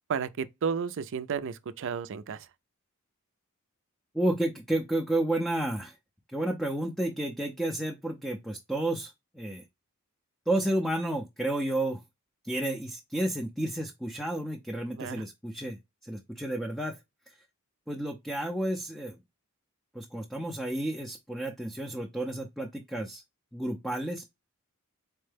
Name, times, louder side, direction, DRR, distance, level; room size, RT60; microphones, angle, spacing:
voice 1, 0.1-2.5 15.0-15.2, right 6 dB, 60° right, 0.4 m, -32 dB
voice 2, 4.1-5.9 6.3-9.6 10.5-12.0 12.4-17.0 17.9-19.2 19.9-23.2 23.5-24.2, right 1 dB, ahead, 0.5 m, -31 dB
4.5 x 2.1 x 3.2 m
head